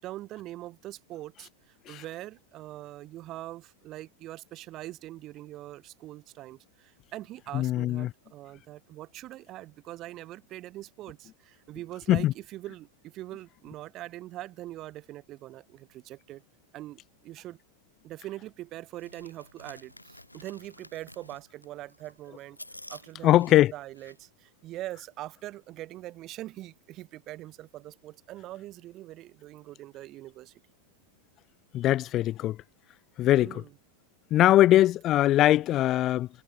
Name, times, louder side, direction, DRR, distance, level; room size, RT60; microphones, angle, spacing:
voice 1, 0.0-16.4 16.7-17.6 18.0-22.6 22.9-30.5 33.4-33.7, right 15 dB, 35° right, 0.8 m, -42 dB
voice 2, 7.5-8.1 12.1-12.3 23.2-23.7 31.7-32.6 33.2-33.6 34.3-36.3, left 14 dB, 35° left, 0.4 m, -21 dB
sound 1, 19.0-24.3, left 1 dB, 85° left, 7.5 m, -50 dB
figure-of-eight pair, 90°, 0 cm